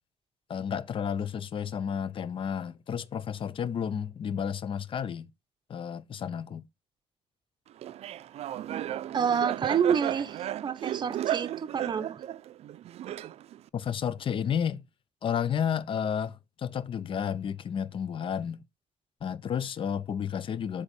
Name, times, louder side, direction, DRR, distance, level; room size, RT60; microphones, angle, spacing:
voice 1, 0.5-5.3 5.7-6.6 13.7-14.8 15.2-18.6 19.2-20.8, left 8 dB, 50° left, 0.6 m, -31 dB
Laughter, 7.8-13.7, right 12 dB, 75° right, 0.4 m, -34 dB
voice 2, 9.1-12.2, right 7 dB, 45° right, 0.8 m, -28 dB
8.2 x 3.6 x 5.3 m
cardioid pair, 110°, 11 cm